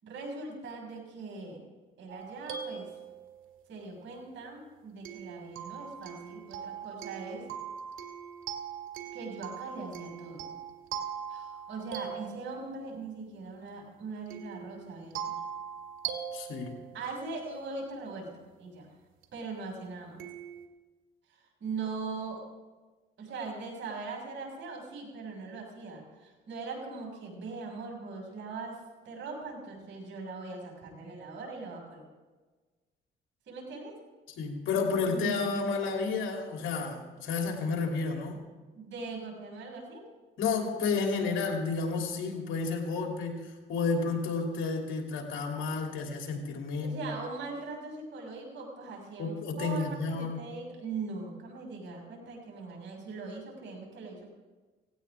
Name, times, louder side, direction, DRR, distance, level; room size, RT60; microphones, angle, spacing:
voice 1, 0.0-1.6 2.0-2.9 3.7-7.4 9.1-10.5 11.3-15.3 16.9-18.9 19.3-20.2 21.3-22.4 23.2-32.0 33.5-34.0 35.1-35.5 38.7-40.1 46.7-54.2, right 4 dB, 70° right, 0 dB, 6.1 m, -40 dB
sound 1, 2.1-3.6 5.1-13.0 14.3-17.6 19.2-19.3 20.2-20.7, right 8 dB, 90° right, 2.1 m, -41 dB
voice 2, 16.3-16.8 34.3-38.4 40.4-47.1 49.2-50.5, left 4 dB, 80° left, 1 dB, 3.1 m, -31 dB
18.0 x 17.5 x 3.6 m, 1.3 s
cardioid pair, 90°, 20 cm